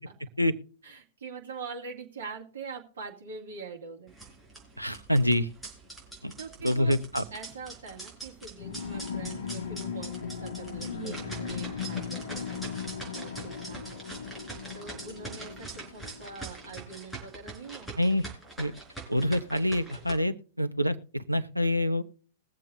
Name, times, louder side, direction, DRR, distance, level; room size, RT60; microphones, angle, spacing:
voice 1, 0.8-4.1 6.4-7.0 7.3-12.7 13.1-14.1 14.7-17.9, right 4 dB, 60° right, 1 dB, 2.1 m, -43 dB
sound 1, 4.1-20.1, right 3 dB, ahead, 4.5 m, -43 dB
voice 2, 4.8-5.5 6.2-6.3 6.6-7.2 18.0-18.2 18.6-18.7 19.1-22.0, left 1 dB, 90° right, 10 dB, 0.8 m, -26 dB
sound 2, 8.6-16.7, left 7 dB, 60° left, 1.7 m, -38 dB
21.5 x 7.6 x 2.5 m, 0.42 s
figure-of-eight pair, 100°, 0 cm